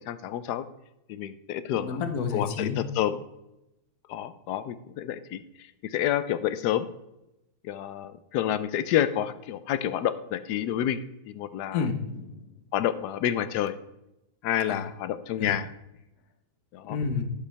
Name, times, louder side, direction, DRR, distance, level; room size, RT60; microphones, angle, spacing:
voice 1, 0.1-0.6 1.1-2.0 2.3-3.2 4.1-5.4 5.8-6.9 7.6-11.9 12.7-13.8 14.4-15.7 16.7-17.0, left 11 dB, 85° left, 13 dB, 1.2 m, -29 dB
voice 2, 1.8-2.9 11.7-12.5 14.7-14.8 15.4-15.6 16.9-17.2, left 5 dB, 70° left, 6 dB, 1.5 m, -30 dB
11.5 x 7.5 x 3.3 m, 0.89 s
omnidirectional pair, 1.7 m